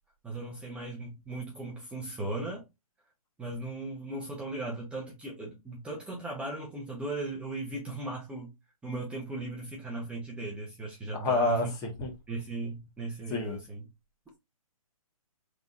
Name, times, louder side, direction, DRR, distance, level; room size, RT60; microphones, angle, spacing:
voice 1, 0.2-2.6 3.4-8.5 8.8-11.7 12.3-13.8, right 2 dB, 5° right, 0.8 m, -37 dB
voice 2, 11.1-12.1 13.3-13.6, left 2 dB, 20° left, 1.1 m, -28 dB
4.9 x 3.6 x 2.6 m
hypercardioid pair, 140°, 19 cm